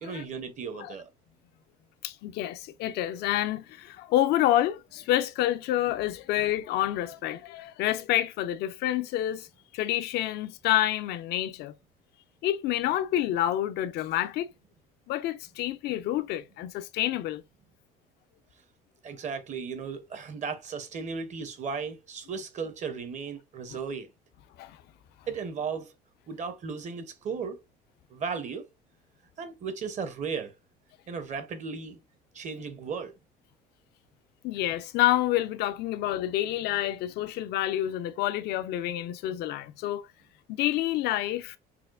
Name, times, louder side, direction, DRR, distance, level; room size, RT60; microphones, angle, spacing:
voice 1, 0.0-1.1 19.0-24.1 25.3-25.9 26.3-27.6 28.1-28.7 29.4-30.5 31.1-32.0 32.3-33.2, right 5 dB, 45° right, 0.8 m, -35 dB
voice 2, 2.0-9.5 9.7-11.7 12.4-14.5 15.1-17.4 24.6-24.8 34.4-40.1 40.5-41.6, left 13 dB, 75° left, 0.4 m, -28 dB
4.2 x 2.2 x 2.4 m
cardioid pair, 110°, 17 cm